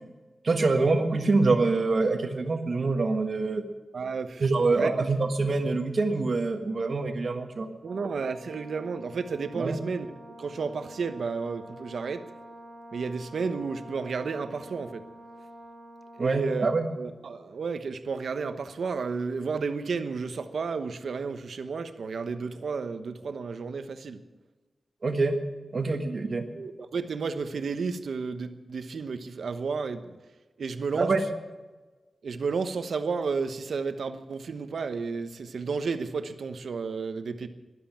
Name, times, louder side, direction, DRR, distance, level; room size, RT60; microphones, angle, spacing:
voice 1, 0.4-3.6 4.4-7.7 9.6-9.8 16.2-16.9 25.0-25.4 25.7-26.5 30.9-31.2, right 3 dB, 50° right, 6 dB, 1.5 m, -25 dB
voice 2, 3.9-5.1 7.8-10.1 10.4-12.2 12.9-15.0 16.2-24.2 26.5-30.2 30.6-31.1 32.2-37.5, right 5 dB, 80° right, 10 dB, 1.0 m, -32 dB
Brass instrument, 7.8-16.7, right 1 dB, 25° right, 2.3 m, -48 dB
13.0 x 11.5 x 8.7 m, 1.2 s
wide cardioid pair, 130°, 0 cm